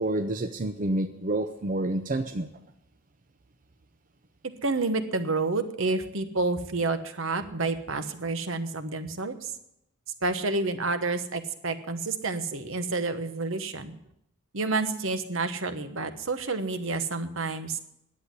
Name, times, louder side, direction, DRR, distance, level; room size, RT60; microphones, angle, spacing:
voice 1, 0.0-2.5, right 1 dB, 40° right, 6 dB, 0.6 m, -28 dB
voice 2, 4.6-9.5 10.2-14.0 14.5-17.8, right 3 dB, 65° right, 9 dB, 1.1 m, -29 dB
10.5 x 8.4 x 9.5 m, 0.79 s
head